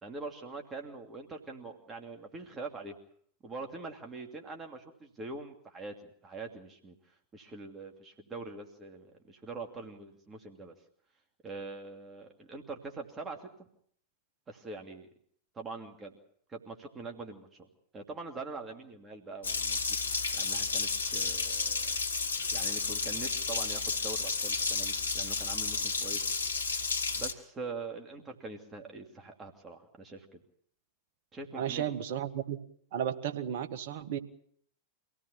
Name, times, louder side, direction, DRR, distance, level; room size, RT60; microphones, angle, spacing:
voice 1, 0.0-2.9 3.4-7.0 7.3-10.7 11.4-13.5 14.5-15.1 15.5-16.1 16.5-17.7 17.9-20.0 20.3-22.0 22.5-26.2 27.1-30.4 31.3-31.8, right 3 dB, 20° right, 3 dB, 2.8 m, -43 dB
Water tap faucet, 19.4-27.3, left 4 dB, 70° left, 1.7 m, -32 dB
voice 2, 31.5-32.6 32.9-34.2, right 9 dB, 55° right, 8 dB, 1.7 m, -33 dB
25.5 x 17.0 x 7.3 m, 0.62 s
figure-of-eight pair, 90°, 0 cm